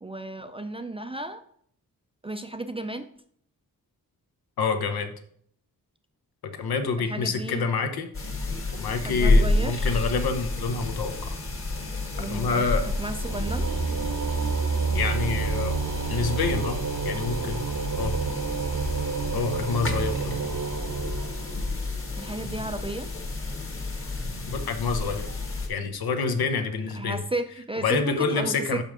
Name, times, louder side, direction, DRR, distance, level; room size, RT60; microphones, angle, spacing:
voice 1, 0.0-1.4 2.2-3.1 7.0-7.6 9.0-10.1 12.2-13.7 22.2-23.1 26.9-28.8, right 2 dB, 15° right, 8 dB, 0.3 m, -34 dB
voice 2, 4.6-5.1 6.4-8.1 8.7-11.3 12.2-12.9 14.9-15.8 16.1-16.8 17.0-17.7 18.0-18.2 19.3-20.4 24.5-25.3 25.7-27.2 27.8-28.8, left 5 dB, 85° left, 7 dB, 1.0 m, -27 dB
sound 1, 8.1-25.7, left 2 dB, 35° left, 1.5 m, -30 dB
sound 2, 11.0-21.9, right 5 dB, 55° right, 0.8 m, -30 dB
5.4 x 5.3 x 6.1 m, 0.64 s
wide cardioid pair, 145°, 36 cm